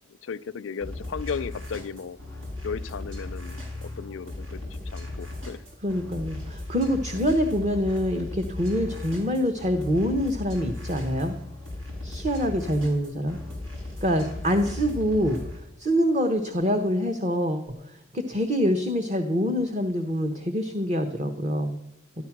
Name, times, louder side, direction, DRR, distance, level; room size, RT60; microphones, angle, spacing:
voice 1, 0.2-2.2 2.6-5.7 7.1-7.3 8.8-9.1, left 6 dB, 70° left, 16 dB, 0.4 m, -36 dB
sound 1, 0.8-15.6, left 2 dB, 80° right, 5.3 m, -37 dB
voice 2, 5.8-11.3 12.0-13.4 14.0-21.8, equal, 35° right, 7 dB, 1.0 m, -25 dB
13.0 x 11.5 x 5.9 m, 0.80 s
head